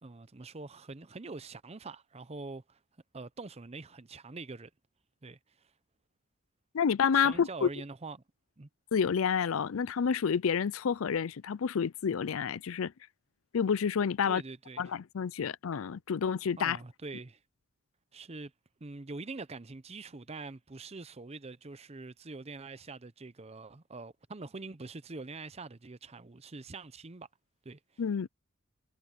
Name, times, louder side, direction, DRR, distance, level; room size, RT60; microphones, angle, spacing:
voice 1, 0.0-2.8 3.1-4.7 5.2-5.4 7.1-8.2 8.6-8.7 14.3-14.9 16.6-17.4 18.1-18.5 18.8-27.3 27.6-27.8, right 3 dB, 30° right, 0.7 m, -44 dB
voice 2, 6.7-7.7 8.9-12.9 13.5-14.4 14.8-16.8 28.0-28.3, left 6 dB, 70° left, 0.5 m, -29 dB
head